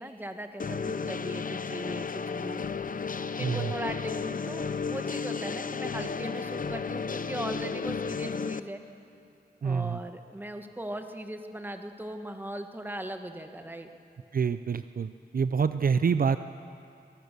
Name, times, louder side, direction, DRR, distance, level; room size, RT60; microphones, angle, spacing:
voice 1, 0.0-2.6 3.4-8.8 9.6-13.9, right 1 dB, 10° right, 6 dB, 1.4 m, -39 dB
sound 1, 0.6-8.6, left 5 dB, 50° left, 0.6 m, -33 dB
voice 2, 3.4-3.7 9.6-10.0 14.3-16.4, right 6 dB, 55° right, 11 dB, 0.5 m, -27 dB
24.0 x 18.5 x 6.8 m, 2.5 s
wide cardioid pair, 90°, 18 cm